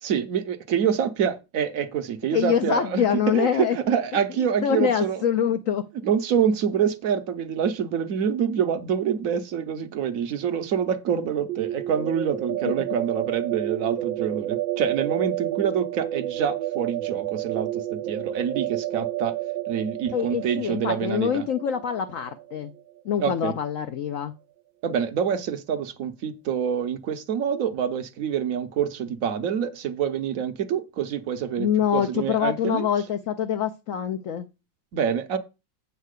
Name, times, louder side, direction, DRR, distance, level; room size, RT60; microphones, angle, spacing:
voice 1, 0.0-5.2 6.0-19.3 19.7-21.5 23.2-23.5 24.8-32.9 34.9-35.4, right 8 dB, 60° right, 1.0 m, -26 dB
voice 2, 2.3-3.8 4.4-5.8 20.1-22.7 23.0-24.3 31.6-34.5, left 8 dB, 70° left, 0.8 m, -25 dB
sound 1, 11.5-23.2, right 13 dB, 90° right, 1.4 m, -31 dB
8.3 x 4.5 x 6.5 m
omnidirectional pair, 2.0 m